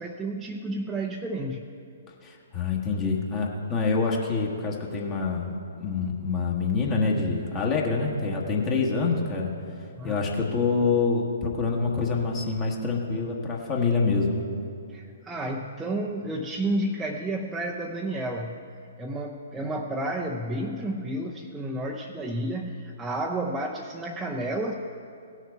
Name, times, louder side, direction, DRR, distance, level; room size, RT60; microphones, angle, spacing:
voice 1, 0.0-1.6 10.0-10.3 14.9-18.6 19.0-24.7, right 1 dB, 10° right, -1 dB, 0.6 m, -31 dB
voice 2, 2.2-5.5 5.8-9.5 10.0-14.4, left 4 dB, 25° left, -1 dB, 1.3 m, -26 dB
17.0 x 6.4 x 4.6 m, 2.4 s
figure-of-eight pair, 120°, 0 cm